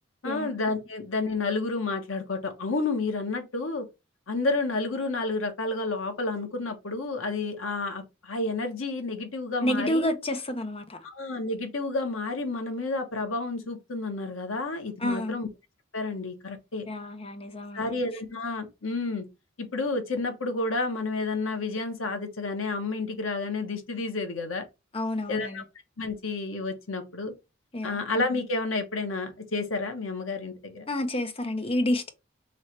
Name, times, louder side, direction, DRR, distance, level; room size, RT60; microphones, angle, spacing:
voice 1, 0.2-3.9 4.3-10.1 11.0-15.5 15.9-16.9 17.7-19.2 19.6-24.6 25.3-25.6 26.0-27.3 27.8-30.8, left 3 dB, 80° left, 1.1 m, -30 dB
voice 2, 9.6-11.0 15.0-15.4 16.9-17.9 24.9-25.6 27.7-28.0 30.9-32.1, left 1 dB, 30° left, 0.7 m, -29 dB
3.2 x 3.1 x 4.4 m
head